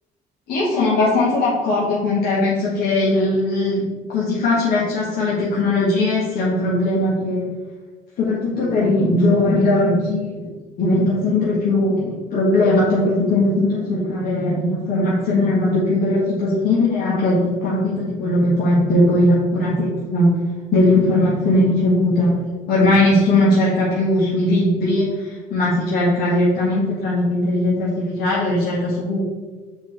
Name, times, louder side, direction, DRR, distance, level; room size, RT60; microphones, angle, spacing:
voice 1, 0.5-7.5 8.2-10.5 10.8-20.3 20.7-22.4 22.7-29.2, left 1 dB, 65° left, -7 dB, 1.6 m, -19 dB
7.0 x 4.1 x 3.3 m, 1.3 s
cardioid pair, 110°, 17 cm